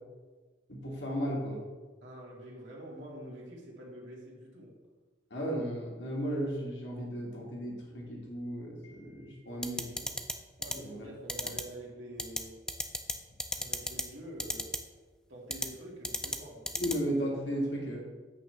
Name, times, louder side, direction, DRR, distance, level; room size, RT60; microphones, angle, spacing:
voice 1, 0.7-1.6 5.3-10.1 10.8-11.0 16.8-18.0, equal, 80° left, -2 dB, 1.8 m, -35 dB
voice 2, 2.0-4.8 10.6-12.6 13.5-14.7 15.3-16.7, right 1 dB, 90° right, -3 dB, 2.0 m, -46 dB
sound 1, 9.6-10.3 10.6-10.7 11.3-11.6 12.2-12.4 12.7-13.1 13.4-14.0 14.4-14.8 15.5-15.7 16.0-16.4 16.7-16.9, left 1 dB, 5° left, 0.5 m, -32 dB
8.7 x 3.3 x 6.4 m, 1.3 s
head